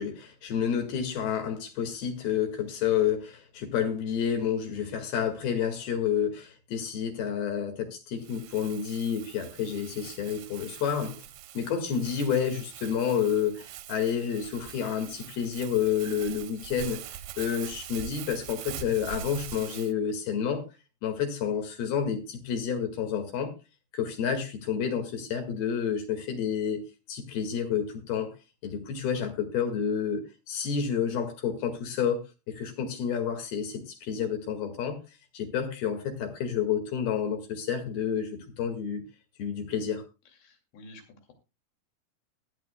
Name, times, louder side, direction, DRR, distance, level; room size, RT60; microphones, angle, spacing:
voice 1, 0.0-11.3 11.6-17.0 17.4-20.6 21.0-23.5 23.9-28.3 28.6-32.2 32.5-35.0 35.3-39.0 39.4-40.0, left 8 dB, 65° left, 3.7 m, -29 dB
Crumpling crinkling, 8.2-19.9, right 10 dB, 75° right, 2.3 m, -43 dB
voice 2, 40.3-41.3, left 1 dB, 80° left, 4.6 m, -51 dB
18.0 x 12.0 x 2.2 m
omnidirectional pair, 4.9 m